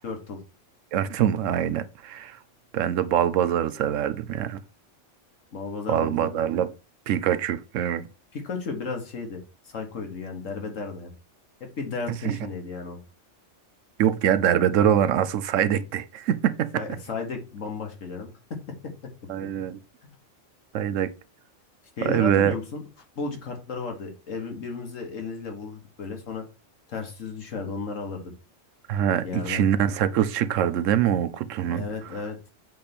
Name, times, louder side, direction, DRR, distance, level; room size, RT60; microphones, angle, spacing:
voice 1, 0.0-0.4 5.5-6.4 8.3-11.1 11.6-13.0 16.8-18.9 22.0-22.8 23.2-26.4 26.9-28.3 29.2-29.6 31.7-32.4, left 4 dB, 90° left, 1.8 m, -34 dB
voice 2, 0.9-2.4 2.7-4.6 5.9-6.7 7.1-8.0 12.2-12.4 14.0-16.7 19.3-19.8 20.7-21.1 22.0-22.5 28.9-31.8, right 10 dB, 85° right, 1.0 m, -24 dB
7.6 x 3.4 x 4.3 m
omnidirectional pair, 1.3 m